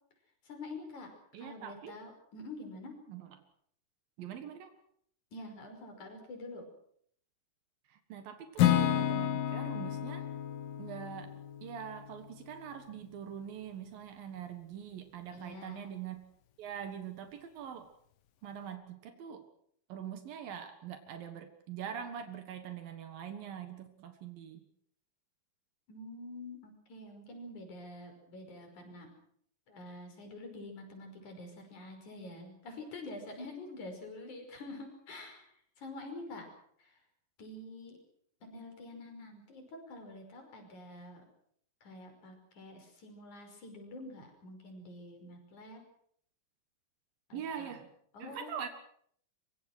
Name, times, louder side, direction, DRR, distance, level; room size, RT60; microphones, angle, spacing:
voice 1, 0.4-1.1 1.4-3.0 5.3-6.7 15.3-15.9 25.9-29.1 29.7-36.5 36.8-37.0 37.4-38.0 38.4-41.3 41.8-45.8 47.3-47.8 48.1-48.6, left 2 dB, 55° left, 5 dB, 6.8 m, -47 dB
voice 2, 1.3-2.0 3.1-3.4 4.2-4.7 7.9-10.3 10.8-11.3 11.6-16.2 16.6-17.9 18.4-19.5 19.9-24.6 47.3-47.9 48.2-48.7, right 8 dB, 80° right, 7 dB, 3.4 m, -43 dB
Acoustic guitar / Strum, 8.6-12.6, left 11 dB, 75° left, 3.1 m, -31 dB
24.0 x 24.0 x 6.3 m, 0.65 s
omnidirectional pair, 4.1 m